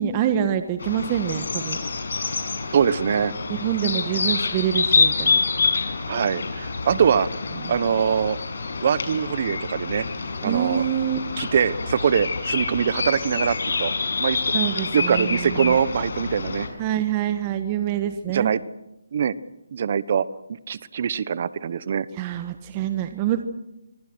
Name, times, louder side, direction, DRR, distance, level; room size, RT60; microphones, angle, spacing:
voice 1, 0.0-1.8 3.5-5.4 6.9-7.0 7.6-7.8 10.4-11.3 14.5-15.8 16.8-18.5 22.1-23.4, right 10 dB, 25° right, 8 dB, 1.5 m, -26 dB
sound 1, 0.8-16.7, left 4 dB, 65° left, 6.5 m, -27 dB
voice 2, 2.7-3.3 6.1-7.3 7.7-8.4 8.8-10.0 10.4-10.8 11.4-13.9 14.2-14.4 14.8-16.7 18.3-18.6 19.1-19.4 19.7-20.2 20.7-22.1, right 7 dB, 45° right, 17 dB, 1.2 m, -23 dB
26.0 x 23.5 x 6.4 m, 0.89 s
hypercardioid pair, 160°, 0 cm